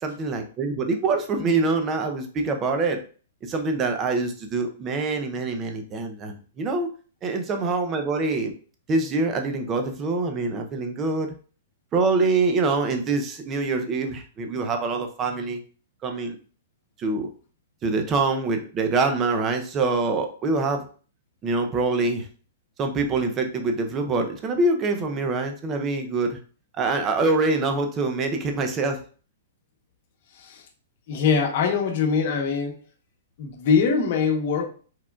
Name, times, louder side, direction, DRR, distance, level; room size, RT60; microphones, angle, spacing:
voice 1, 0.0-3.0 3.4-6.9 7.2-8.5 8.9-11.3 11.9-15.6 16.0-16.4 17.0-17.3 17.8-20.9 21.4-22.3 22.8-26.4 26.8-29.0, right 3 dB, 15° right, 5 dB, 0.6 m, -25 dB
voice 2, 31.1-32.8 33.4-34.7, left 5 dB, 40° left, 1 dB, 1.0 m, -22 dB
4.7 x 4.4 x 2.4 m, 0.39 s
hypercardioid pair, 175°, 0 cm